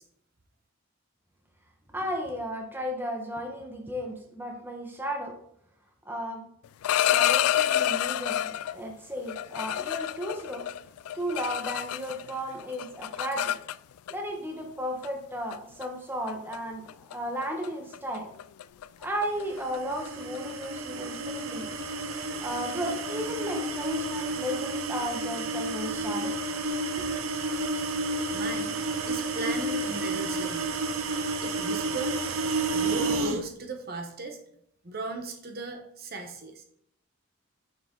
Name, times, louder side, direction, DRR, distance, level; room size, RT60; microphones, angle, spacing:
voice 1, 1.9-5.4 6.0-6.4 7.1-10.7 11.1-13.5 14.1-16.8 17.1-18.3 19.0-21.7 22.4-26.4 27.0-27.1, equal, 10° right, 1 dB, 1.0 m, -34 dB
sound 1, 6.6-8.8 9.3-12.3 12.6-14.1 15.0-15.2 15.5-15.8 16.3-16.6 16.9-17.1 17.4-17.7 17.9-23.3, left 11 dB, 85° left, 0.3 m, -29 dB
sound 2, 19.5-33.4, right 2 dB, 70° right, 0.7 m, -31 dB
voice 2, 28.3-28.8 29.0-30.8 31.4-32.2 32.7-34.4 34.8-36.6, right 2 dB, 45° right, 5 dB, 1.0 m, -37 dB
6.6 x 6.6 x 3.8 m, 0.69 s
head